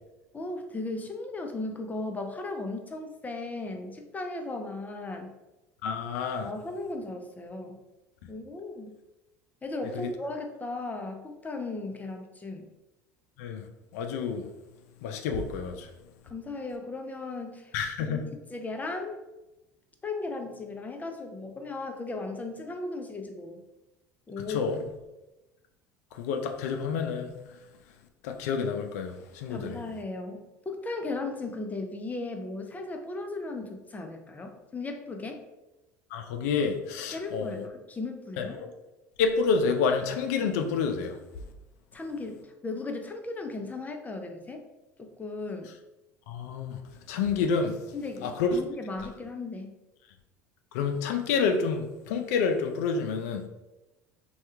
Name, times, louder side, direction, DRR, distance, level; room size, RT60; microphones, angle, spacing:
voice 1, 0.3-5.3 6.4-7.8 8.3-9.0 9.6-12.7 16.2-17.7 18.1-19.2 20.0-23.6 24.3-24.7 29.5-30.4 30.7-35.4 37.1-38.6 41.9-44.6 45.0-45.7 47.9-49.7, left 3 dB, 20° left, 4 dB, 0.5 m, -36 dB
voice 2, 5.8-6.5 10.0-10.1 13.4-13.6 13.9-14.5 15.0-15.9 17.7-18.2 24.5-24.8 26.2-27.3 28.2-29.8 36.1-37.6 38.4-38.7 39.2-41.1 46.3-46.8 47.1-47.8 48.2-48.6 50.7-53.5, left 5 dB, 80° left, 5 dB, 0.4 m, -28 dB
2.8 x 2.3 x 3.3 m, 0.99 s
hypercardioid pair, 85°, 8 cm